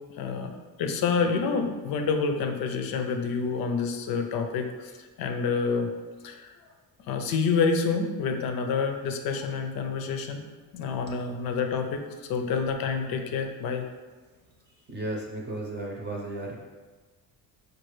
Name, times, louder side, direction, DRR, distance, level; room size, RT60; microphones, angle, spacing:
voice 1, 0.2-4.9 5.2-5.9 6.2-6.5 7.1-10.4 10.7-12.0 12.3-13.9, left 5 dB, 75° left, 5 dB, 0.5 m, -28 dB
voice 2, 14.9-16.5, right 2 dB, 30° right, -2 dB, 0.6 m, -34 dB
4.6 x 2.4 x 3.1 m, 1.3 s
cardioid pair, 130°, 35 cm